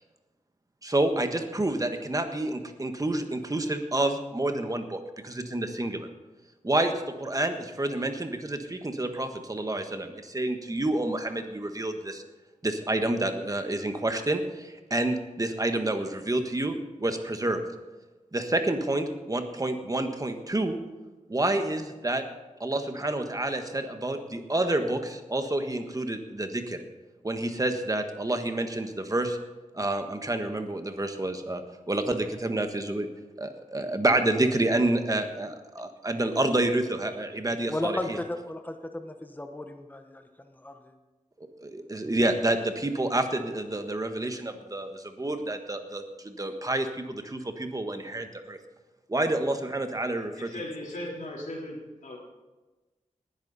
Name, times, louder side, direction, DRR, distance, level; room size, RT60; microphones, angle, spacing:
voice 1, 0.8-6.1 6.6-6.9 7.2-12.2 12.6-17.6 18.3-20.8 21.3-22.2 22.6-26.8 27.2-29.4 29.7-31.6 31.9-33.1 33.4-38.2 41.6-48.6 49.1-50.5, right 1 dB, 25° right, 6 dB, 1.4 m, -28 dB
voice 2, 37.7-40.2 40.6-40.7, left 1 dB, 15° left, 6 dB, 1.1 m, -34 dB
voice 3, 50.3-52.2, left 1 dB, 85° left, -3 dB, 3.8 m, -38 dB
19.0 x 10.5 x 4.2 m, 1.2 s
wide cardioid pair, 80°, 13 cm